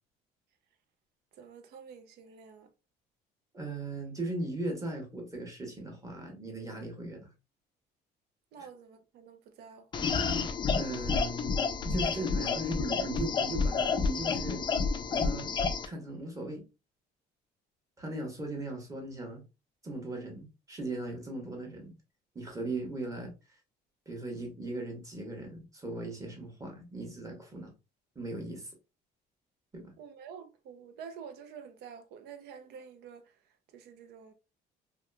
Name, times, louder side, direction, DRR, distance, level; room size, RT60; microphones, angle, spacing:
voice 1, 1.3-2.7 8.5-10.1 30.0-33.3 33.7-34.3, right 7 dB, 75° right, 0.5 m, -48 dB
voice 2, 3.5-7.3 8.6-8.7 10.7-11.6 11.9-14.7 15.1-15.5 15.8-16.6 18.0-19.4 19.8-21.9 22.3-23.3 24.1-27.7 28.1-28.7 29.7-29.9, right 2 dB, 20° right, 1.1 m, -38 dB
sound 1, 9.9-15.9, left 5 dB, 30° left, 0.4 m, -30 dB
2.8 x 2.3 x 2.2 m
cardioid pair, 110°, 17 cm